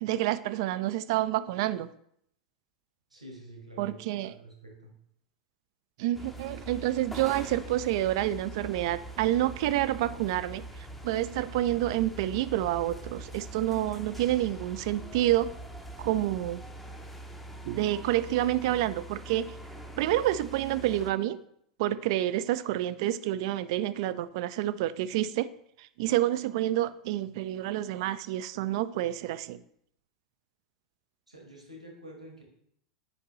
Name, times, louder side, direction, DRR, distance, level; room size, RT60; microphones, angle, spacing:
voice 1, 0.0-1.9 3.8-4.3 6.0-15.6 16.0-16.6 17.6-19.5 20.0-21.4 21.8-25.5 25.8-29.6, right 14 dB, 50° right, 14 dB, 0.4 m, -28 dB
voice 2, 3.1-4.9 31.3-32.4, equal, 85° right, 0 dB, 1.6 m, -48 dB
sound 1, 6.1-21.1, right 1 dB, 5° left, 0.7 m, -43 dB
9.7 x 5.2 x 3.1 m, 0.70 s
figure-of-eight pair, 85°, 4 cm